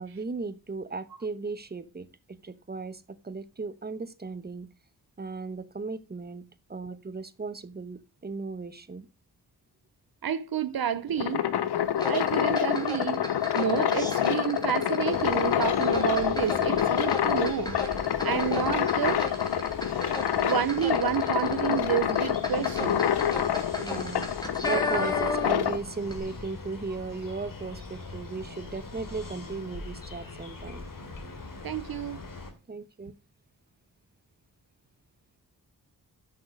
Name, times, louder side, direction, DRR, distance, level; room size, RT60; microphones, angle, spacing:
voice 1, 0.0-4.7 5.2-9.1 23.8-30.9 32.7-33.1, right 4 dB, 25° right, 1.1 m, -36 dB
voice 2, 10.2-11.4 12.0-13.2 13.5-17.8 18.2-19.3 19.9-23.0 31.6-32.2, right 10 dB, 65° right, 0.8 m, -30 dB
sound 1, 11.0-25.8, left 10 dB, 80° left, 0.9 m, -27 dB
sound 2, 12.0-25.7 26.0-26.2, left 1 dB, 10° left, 2.8 m, -36 dB
sound 3, 15.1-32.5, left 3 dB, 55° left, 2.8 m, -42 dB
10.5 x 6.4 x 4.9 m
cardioid pair, 50°, 39 cm